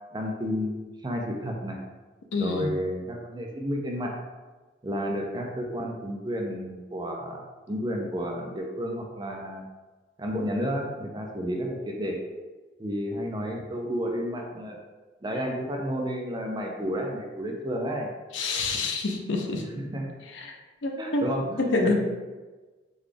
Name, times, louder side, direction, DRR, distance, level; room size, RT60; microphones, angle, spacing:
voice 1, 0.1-1.8 2.4-4.2 4.8-9.6 10.2-12.2 12.8-14.8 15.2-18.1 19.5-20.1 21.0-21.9, equal, 25° right, 1 dB, 0.4 m, -31 dB
voice 2, 2.3-2.7 18.3-19.6 20.3-20.6 20.8-21.3 21.6-21.9, left 3 dB, 85° left, 2 dB, 0.5 m, -27 dB
3.9 x 2.3 x 3.3 m, 1.3 s
head